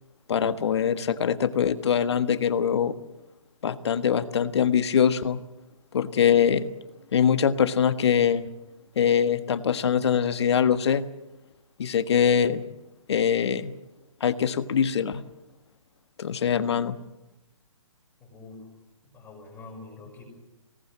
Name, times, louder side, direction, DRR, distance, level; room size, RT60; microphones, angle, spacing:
voice 1, 0.3-3.0 3.6-5.4 5.9-6.7 7.1-8.4 9.0-11.1 11.8-12.6 13.1-13.7 14.2-15.2 16.2-17.0, left 8 dB, 55° left, 12 dB, 1.5 m, -23 dB
voice 2, 18.2-18.7 19.0-20.2, left 3 dB, 15° left, -3 dB, 6.1 m, -45 dB
24.5 x 18.5 x 7.6 m, 0.97 s
figure-of-eight pair, 135°, 17 cm